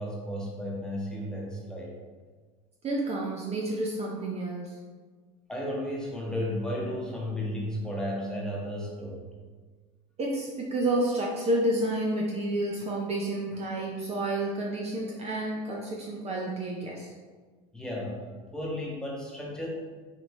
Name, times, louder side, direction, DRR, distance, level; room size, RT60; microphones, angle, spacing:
voice 1, 0.0-1.9 5.5-9.2 17.7-18.3 18.5-19.7, left 1 dB, 5° left, -4 dB, 1.0 m, -33 dB
voice 2, 2.8-4.8 10.2-17.1, right 1 dB, 30° right, -2 dB, 0.6 m, -30 dB
5.2 x 2.6 x 3.0 m, 1.4 s
hypercardioid pair, 95°, 21 cm